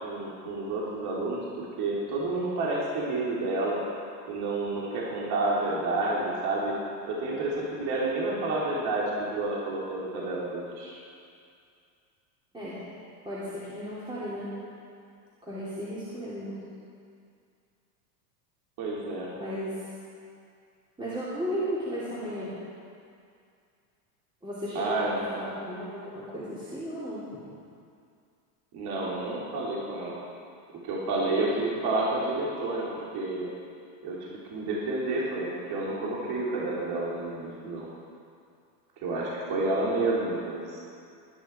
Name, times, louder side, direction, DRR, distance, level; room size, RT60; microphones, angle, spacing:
voice 1, 0.0-3.8 4.3-6.7 7.1-11.0 18.8-19.3 24.7-25.2 28.7-30.2 30.8-32.9 33.1-33.5 34.0-37.9 39.0-40.8, right 2 dB, 50° right, -5 dB, 3.3 m, -30 dB
voice 2, 13.2-14.5 15.4-16.5 19.3-19.8 21.0-22.5 24.4-27.5, equal, 10° right, -10 dB, 3.3 m, -35 dB
19.5 x 10.0 x 4.5 m, 2.4 s
supercardioid pair, 130°, 49 cm